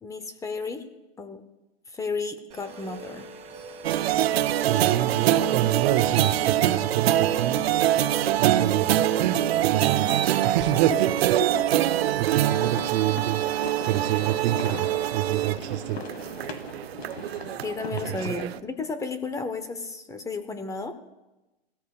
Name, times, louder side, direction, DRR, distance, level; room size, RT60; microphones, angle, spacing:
voice 1, 0.0-0.8 1.2-1.4 1.9-3.3 10.9-11.0 11.5-11.8 17.6-20.9, left 3 dB, 10° left, 10 dB, 0.6 m, -33 dB
sound 1, 2.5-9.4, right 4 dB, 20° right, 1.7 m, -42 dB
sound 2, 3.8-18.6, right 12 dB, 80° right, 0.6 m, -24 dB
voice 2, 4.6-7.6 8.4-10.1 10.4-11.3 12.2-13.4 13.8-16.0 17.9-18.4, right 13 dB, 45° right, 7 dB, 0.7 m, -27 dB
sound 3, 12.4-18.3, left 5 dB, 85° left, 1.3 m, -40 dB
17.0 x 13.0 x 2.4 m, 1.0 s
hypercardioid pair, 135°, 31 cm